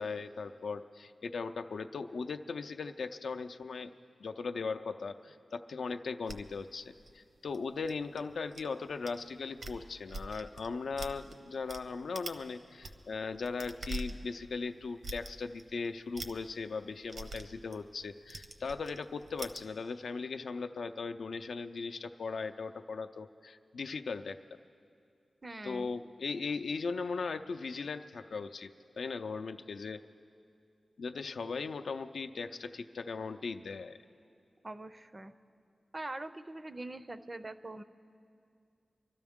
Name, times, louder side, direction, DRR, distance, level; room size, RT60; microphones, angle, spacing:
voice 1, 0.0-3.9 4.2-24.6 25.6-30.0 31.0-34.0, left 4 dB, 80° left, 8 dB, 0.4 m, -38 dB
sound 1, 6.3-8.6 9.1-9.2 9.5-11.8 12.1-12.4 12.7-19.6, right 2 dB, 70° right, 0.8 m, -44 dB
voice 2, 25.4-25.9 34.6-35.3 35.9-37.8, right 2 dB, 30° right, 11 dB, 0.4 m, -43 dB
24.5 x 13.0 x 3.6 m, 2.4 s
wide cardioid pair, 105°, 0 cm